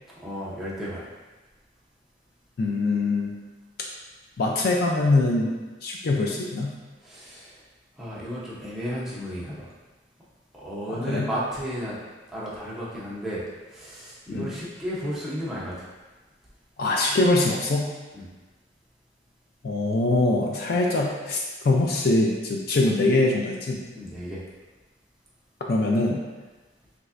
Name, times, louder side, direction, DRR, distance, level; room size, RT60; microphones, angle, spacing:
voice 1, 0.2-1.1 7.0-7.6 8.0-9.7 10.5-12.0 12.3-13.4 13.7-15.7 18.1-18.3 24.0-24.4, equal, ahead, -8 dB, 0.7 m, -33 dB
voice 2, 2.6-3.3 4.4-5.5 5.8-6.7 10.9-11.3 14.3-14.5 16.8-17.9 19.6-21.4 21.6-23.8 25.7-26.2, left 2 dB, 50° left, -1 dB, 0.4 m, -23 dB
3.5 x 3.1 x 2.5 m, 1.2 s
head